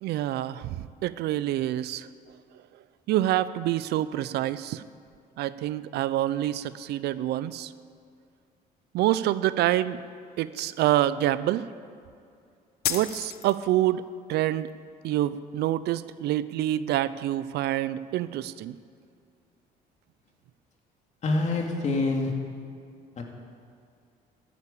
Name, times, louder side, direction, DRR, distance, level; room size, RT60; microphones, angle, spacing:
voice 1, 0.0-2.1 3.1-4.8 5.4-7.7 8.9-10.0 10.4-11.7 12.9-14.0 14.3-14.7 15.0-18.8, right 13 dB, 75° right, 16 dB, 0.6 m, -27 dB
sound 1, 12.8-13.9, left 10 dB, 65° left, 1.0 m, -32 dB
voice 2, 21.2-22.3 23.2-23.3, left 2 dB, 45° left, 2 dB, 2.6 m, -26 dB
14.0 x 9.4 x 8.6 m, 2.3 s
cardioid pair, 110°, 17 cm